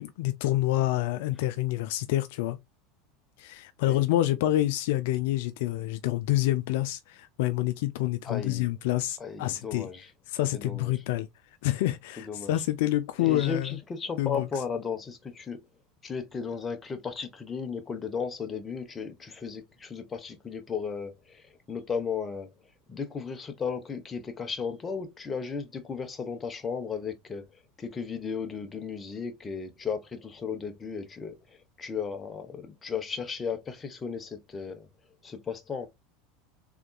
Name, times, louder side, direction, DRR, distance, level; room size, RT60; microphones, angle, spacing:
voice 1, 0.0-2.6 3.4-9.9 10.3-11.3 11.6-13.8 14.2-14.5, left 15 dB, 70° left, 0.3 m, -27 dB
voice 2, 8.2-8.7 9.2-10.1 10.5-11.0 12.2-12.6 13.2-15.6 16.0-22.5 22.9-27.5 27.8-34.9 35.2-35.9, left 6 dB, 25° left, 1.1 m, -35 dB
3.8 x 3.5 x 2.3 m
hypercardioid pair, 90°, 0 cm